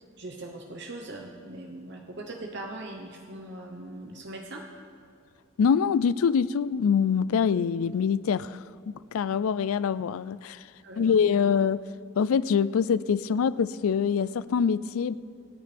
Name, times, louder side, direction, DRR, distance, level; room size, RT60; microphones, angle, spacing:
voice 1, 0.2-4.7 10.8-11.4, right 2 dB, 55° right, 2 dB, 1.0 m, -40 dB
voice 2, 5.6-10.6 11.0-11.8 12.2-15.1, left 6 dB, 80° left, 17 dB, 0.4 m, -25 dB
26.5 x 9.5 x 3.5 m, 2.2 s
head